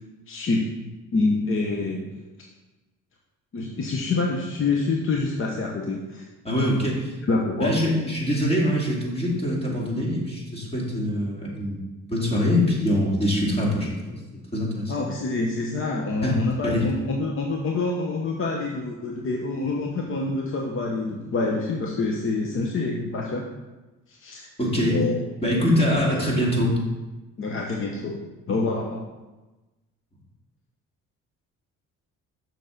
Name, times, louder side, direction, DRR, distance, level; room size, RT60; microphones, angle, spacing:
voice 1, 0.3-0.7 1.1-2.1 3.5-6.3 7.3-7.7 14.9-23.5 24.1-24.5 24.9-25.2 26.1-26.2 27.4-29.0, left 3 dB, 40° left, 0 dB, 0.9 m, -26 dB
voice 2, 6.4-7.2 7.6-14.2 14.5-15.0 16.2-16.8 24.6-25.0 25.4-26.8, left 1 dB, 20° left, -3 dB, 2.4 m, -24 dB
6.6 x 6.5 x 3.9 m, 1.1 s
cardioid pair, 95°, 31 cm